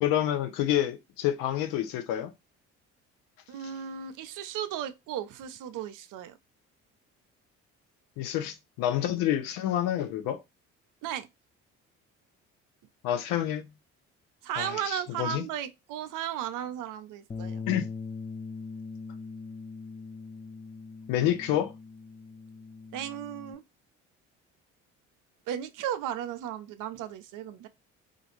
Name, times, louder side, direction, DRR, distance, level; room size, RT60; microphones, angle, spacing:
voice 1, 0.0-2.3 8.2-10.4 13.0-13.7 14.6-15.4 17.7-17.9 21.1-21.7, left 11 dB, 70° left, 0.6 m, -28 dB
voice 2, 3.5-6.4 11.0-11.3 14.4-17.6 22.9-23.6 25.5-27.7, right 10 dB, 60° right, 0.5 m, -35 dB
Bass guitar, 17.3-23.5, left 4 dB, 15° left, 0.4 m, -41 dB
2.5 x 2.3 x 2.9 m
hypercardioid pair, 55°, 36 cm